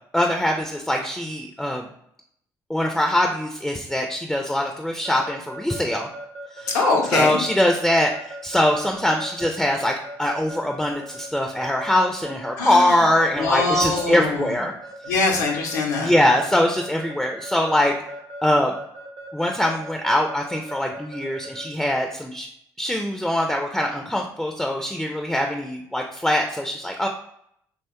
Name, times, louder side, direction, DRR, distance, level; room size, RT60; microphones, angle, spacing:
voice 1, 0.1-1.9 2.7-6.1 6.6-6.7 7.1-9.9 10.2-14.7 15.1-15.2 16.0-17.9 18.4-18.7 19.3-22.5 22.8-27.1, left 1 dB, ahead, 2 dB, 0.4 m, -22 dB
Keyboard (musical) / Alarm, 5.0-21.7, right 1 dB, 60° right, 0.7 m, -38 dB
voice 2, 6.7-7.4 12.6-13.1 13.4-14.6 15.1-16.1, left 3 dB, 85° left, 0 dB, 0.6 m, -23 dB
3.0 x 2.2 x 2.8 m, 0.72 s
hypercardioid pair, 55°, 10 cm